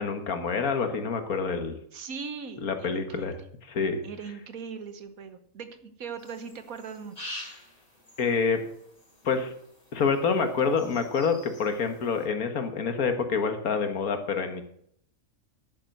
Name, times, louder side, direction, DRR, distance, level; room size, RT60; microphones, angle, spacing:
voice 1, 0.0-1.8 2.6-3.4 3.7-4.0 8.2-8.6 9.2-9.5 9.9-14.6, left 5 dB, 90° left, 7 dB, 1.9 m, -27 dB
voice 2, 1.9-3.4 4.0-7.3, right 6 dB, 85° right, 9 dB, 1.6 m, -40 dB
sound 1, 6.2-12.3, left 1 dB, 50° left, 4.5 m, -47 dB
10.5 x 8.9 x 6.5 m, 0.69 s
omnidirectional pair, 1.5 m